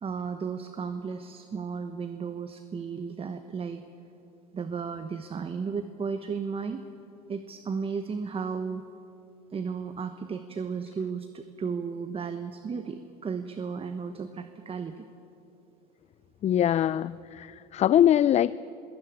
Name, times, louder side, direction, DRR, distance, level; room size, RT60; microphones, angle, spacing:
voice 1, 0.0-3.8 4.5-6.8 7.3-8.8 9.5-15.1, right 5 dB, 30° right, 9 dB, 1.1 m, -34 dB
voice 2, 16.4-18.6, left 11 dB, 35° left, 17 dB, 0.4 m, -23 dB
22.0 x 17.0 x 8.9 m, 2.8 s
supercardioid pair, 95°, 20 cm